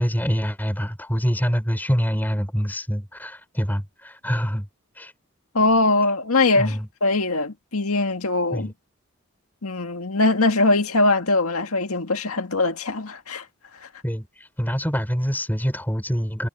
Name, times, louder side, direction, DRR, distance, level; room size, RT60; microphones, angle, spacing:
voice 1, 0.0-4.7 5.0-5.1 6.6-6.9 8.5-8.7 14.0-16.5, equal, 10° left, 4.4 m, -25 dB
voice 2, 5.5-8.7 9.6-13.4, left 2 dB, 90° left, 1.9 m, -21 dB
head